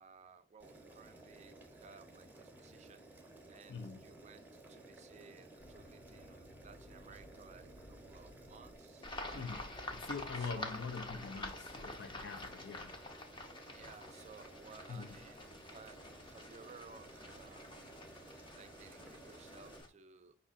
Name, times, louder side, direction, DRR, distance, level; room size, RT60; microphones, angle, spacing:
voice 1, 0.0-3.0 3.5-9.5 10.3-10.7 13.7-17.8 18.5-20.4, right 5 dB, 35° right, 0.4 m, -58 dB
Boiling, 0.6-19.8, right 2 dB, 10° right, 0.8 m, -56 dB
voice 2, 3.7-4.1 9.3-13.0 14.9-15.2, left 5 dB, 65° left, 0.5 m, -44 dB
sound 1, 5.6-9.3, left 1 dB, 85° left, 0.9 m, -59 dB
sound 2, 9.0-19.9, left 2 dB, 25° left, 0.7 m, -48 dB
5.4 x 2.4 x 3.5 m
head